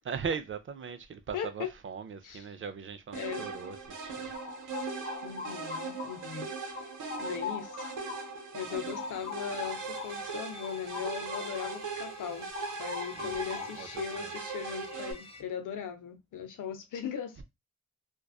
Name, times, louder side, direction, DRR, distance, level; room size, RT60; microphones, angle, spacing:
voice 1, 0.1-4.3 13.1-14.3, right 6 dB, 45° right, 0.5 m, -39 dB
voice 2, 1.3-1.7 2.2-2.4 3.1-3.5 5.2-6.5 7.2-7.9 8.5-12.5 12.8-17.4, left 8 dB, 85° left, 0.6 m, -39 dB
sound 1, 3.1-15.1, right 4 dB, 75° right, 0.8 m, -39 dB
sound 2, 3.9-6.4 6.7-11.9 12.2-14.0, left 6 dB, 45° left, 0.8 m, -42 dB
sound 3, 8.6-15.4, left 3 dB, 20° left, 0.5 m, -52 dB
2.5 x 2.2 x 2.3 m
cardioid pair, 80°, 30 cm